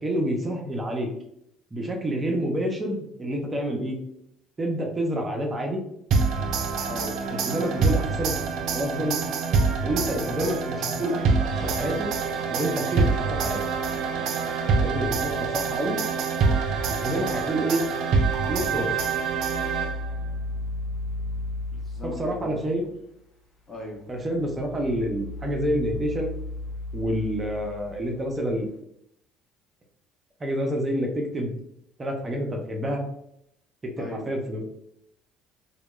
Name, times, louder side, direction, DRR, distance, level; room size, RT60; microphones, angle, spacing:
voice 1, 0.0-1.1 1.7-4.0 4.6-5.8 7.3-8.4 8.7-9.2 9.8-12.1 12.5-13.6 14.8-16.0 16.9-17.8 18.5-19.1 22.0-22.8 24.1-26.3 26.9-28.7 30.4-31.5 32.0-33.0 33.8-34.6, right 1 dB, 25° right, 2 dB, 0.7 m, -28 dB
sound 1, 6.1-20.2, right 4 dB, 65° right, 0.3 m, -26 dB
voice 2, 6.8-7.2 21.7-22.9 23.7-24.1 34.0-34.3, left 1 dB, 30° left, -2 dB, 1.1 m, -38 dB
sound 2, 19.1-22.8 24.1-28.5, left 2 dB, 65° left, 0.9 m, -35 dB
2.2 x 2.1 x 3.0 m, 0.76 s
hypercardioid pair, 60°, 0 cm